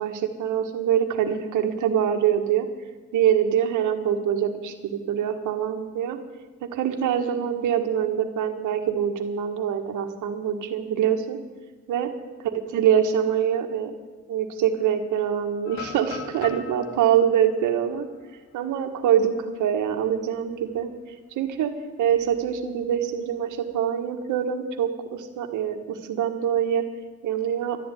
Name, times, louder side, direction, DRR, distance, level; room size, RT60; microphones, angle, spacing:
voice 1, 0.0-2.7 3.1-6.2 6.6-11.4 11.9-12.1 12.5-14.0 14.3-18.1 18.5-20.9 21.3-21.7 22.0-26.8 27.2-27.8, right 9 dB, 85° right, 7 dB, 1.8 m, -24 dB
sound 1, 15.7-19.6 20.0-20.1 20.6-20.9 22.2-23.1, left 7 dB, 75° left, 2.2 m, -42 dB
13.0 x 10.5 x 9.4 m, 1.2 s
cardioid pair, 90°, 30 cm